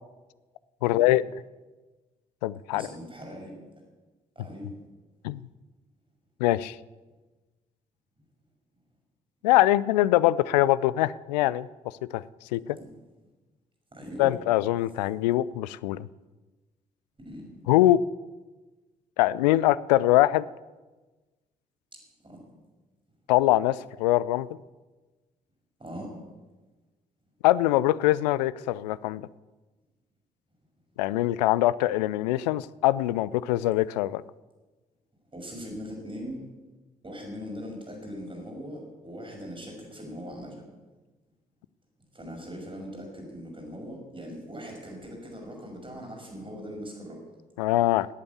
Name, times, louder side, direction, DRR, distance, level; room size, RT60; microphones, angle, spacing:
voice 1, 0.8-1.2 2.4-2.9 5.2-5.4 6.4-6.8 9.4-11.7 12.1-12.2 12.5-12.8 14.2-16.1 17.7-18.0 19.2-20.5 23.3-24.5 27.4-29.3 31.0-34.2 47.6-48.1, left 15 dB, 75° left, 19 dB, 0.4 m, -23 dB
voice 2, 2.7-3.5 4.4-4.7 12.7-12.9 13.9-14.3 17.2-17.6 22.2-22.4 25.8-26.1 35.3-36.4 37.0-40.6 42.1-47.2, equal, 25° right, 1 dB, 6.0 m, -40 dB
16.0 x 8.7 x 8.4 m, 1.2 s
figure-of-eight pair, 40°, 21 cm